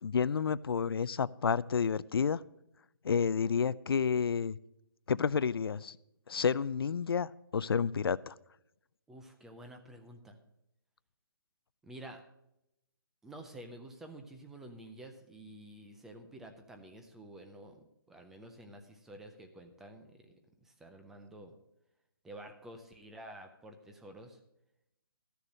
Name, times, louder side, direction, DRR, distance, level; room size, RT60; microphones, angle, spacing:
voice 1, 0.0-2.4 3.0-4.6 5.1-6.0 6.3-8.3, left 6 dB, 85° left, 19 dB, 0.4 m, -30 dB
voice 2, 9.1-10.4 11.8-12.2 13.2-20.3 20.6-21.5 22.2-24.4, right 1 dB, 5° right, 5 dB, 0.4 m, -50 dB
13.0 x 6.9 x 6.2 m, 0.83 s
hypercardioid pair, 165°, 12 cm